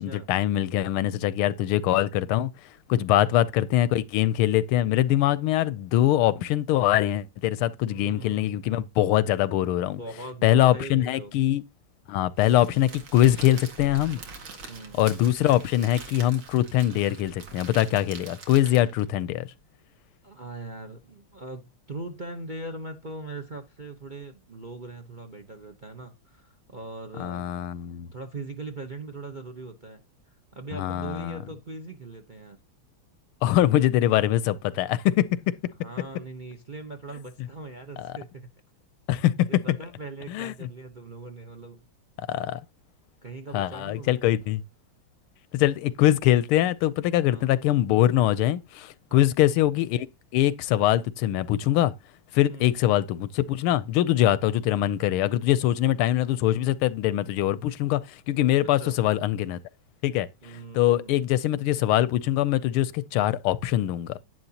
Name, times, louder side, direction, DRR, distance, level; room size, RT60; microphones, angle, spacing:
voice 1, 0.0-2.5 2.9-10.0 10.4-11.6 12.1-14.2 15.0-19.5 27.2-28.1 30.7-31.4 33.4-35.5 38.0-38.1 39.1-39.5 40.3-40.5 42.3-42.6 43.5-44.6 45.5-50.1 50.3-51.9 52.3-59.6 60.0-60.3 60.7-64.2, left 13 dB, 90° left, 1.6 m, -23 dB
voice 2, 7.9-8.5 10.0-11.4 14.7-15.1 20.2-27.5 28.1-32.6 35.7-38.5 39.4-41.8 43.2-44.2 47.3-47.5 49.1-49.3 52.5-52.8 58.8-59.0 60.4-61.3, right 2 dB, 35° right, 0.7 m, -40 dB
Crackle, 12.4-19.1, right 4 dB, 70° right, 2.7 m, -44 dB
11.0 x 10.5 x 2.8 m
omnidirectional pair, 2.3 m